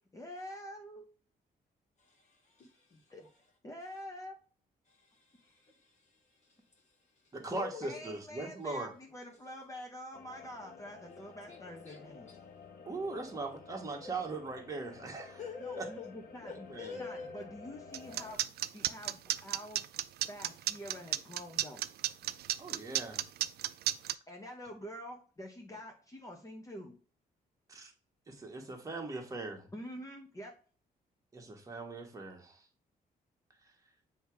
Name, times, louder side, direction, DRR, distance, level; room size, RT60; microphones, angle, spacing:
voice 1, 0.1-1.1 3.1-3.2 3.6-4.3 5.4-5.5 7.8-12.4 15.6-18.4 18.7-19.8 20.3-21.9 24.3-26.9 29.7-30.5, equal, 20° left, 0.9 m, -46 dB
voice 2, 2.0-3.3 4.9-8.0 11.1-12.3 13.9-14.2 15.4-16.1 16.4-17.5, left 5 dB, 45° left, 1.6 m, -48 dB
voice 3, 7.3-8.9 12.8-15.4 15.8-15.9 16.7-17.0 22.6-23.2 27.7-27.9 28.3-29.7 31.3-32.7 33.6-33.7, right 3 dB, 20° right, 1.4 m, -40 dB
sound 1, 10.1-18.3, left 5 dB, 75° left, 1.1 m, -52 dB
sound 2, 17.9-24.1, right 13 dB, 75° right, 0.4 m, -32 dB
7.7 x 2.9 x 4.7 m
cardioid pair, 135°, 16 cm